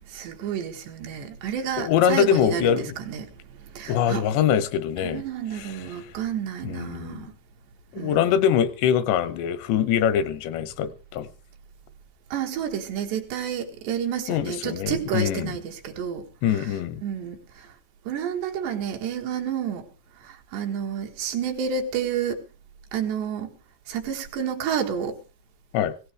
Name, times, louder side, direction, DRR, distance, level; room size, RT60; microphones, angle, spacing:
voice 1, 0.1-3.3 3.8-4.3 5.0-7.4 8.0-8.4 12.3-16.3 16.6-16.7 17.0-17.7 18.1-19.9 20.2-22.4 22.9-23.5 23.9-25.2, right 8 dB, 80° right, 3.9 m, -30 dB
voice 2, 1.8-3.0 3.9-5.2 5.5-5.9 6.6-7.3 7.9-11.3 14.3-15.5 16.4-17.0 25.7-25.9, left 9 dB, 85° left, 3.1 m, -23 dB
18.0 x 17.5 x 3.3 m
omnidirectional pair, 4.9 m